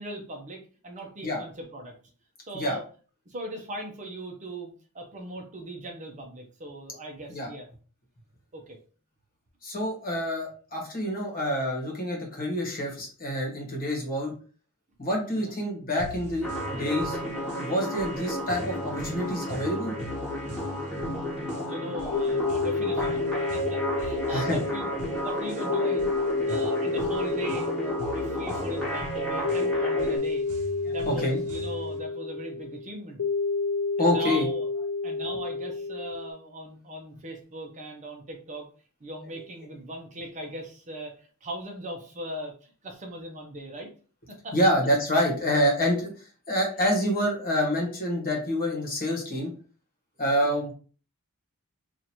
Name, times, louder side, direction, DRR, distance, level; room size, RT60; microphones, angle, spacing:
voice 1, 0.0-1.9 2.5-2.8 3.3-7.6 8.5-8.8 15.3-15.5 21.6-24.9 25.2-26.1 26.5-30.4 30.8-33.2 34.0-34.7 35.0-38.7 39.0-43.9 44.3-44.6 50.4-50.6, right 1 dB, 35° right, 2 dB, 0.7 m, -39 dB
voice 2, 9.6-14.3 15.0-17.2 17.6-19.9 20.8-20.9 24.3-24.6 30.9-31.4 34.0-34.4 44.5-49.5 50.2-50.7, equal, 40° left, 0 dB, 1.3 m, -27 dB
sound 1, 16.0-32.0, right 1 dB, 80° right, 0.7 m, -42 dB
sound 2, 16.4-30.2, equal, 5° left, 1.4 m, -32 dB
sound 3, 22.1-36.3, left 4 dB, 70° left, 0.5 m, -30 dB
2.9 x 2.5 x 4.3 m, 0.39 s
head